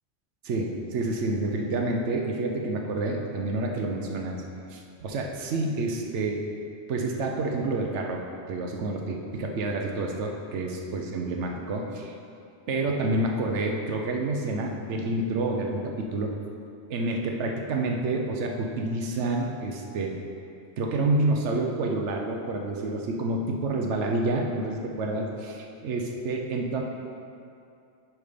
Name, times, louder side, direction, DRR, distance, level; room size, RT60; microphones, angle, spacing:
voice 1, 0.4-4.4 4.7-6.4 6.9-12.1 12.7-16.3 16.9-20.1 20.8-26.8, right 2 dB, 90° right, 1 dB, 1.1 m, -28 dB
10.5 x 3.6 x 5.0 m, 2.6 s
omnidirectional pair, 1.2 m